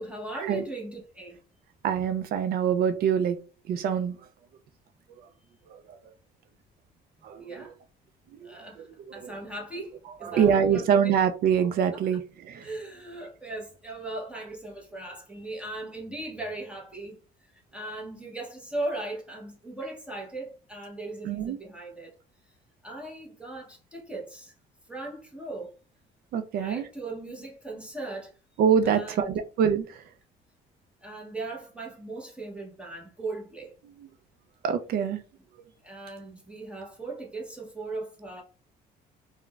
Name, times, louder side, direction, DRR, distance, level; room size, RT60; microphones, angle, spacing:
voice 1, 0.0-1.4 7.4-7.8 8.4-11.1 12.6-17.2 17.7-22.1 22.8-24.5 24.9-25.7 26.5-28.3 28.8-29.3 31.0-33.7 35.8-38.4, right 2 dB, 5° right, 0.8 m, -38 dB
voice 2, 1.8-3.4 3.7-4.2 5.7-6.0 7.2-7.7 8.3-9.3 10.2-12.7 21.2-21.6 26.3-26.9 28.6-30.0 34.0-34.1 34.6-35.2, right 8 dB, 65° right, 0.4 m, -25 dB
3.7 x 2.1 x 2.3 m
cardioid pair, 110°, 17 cm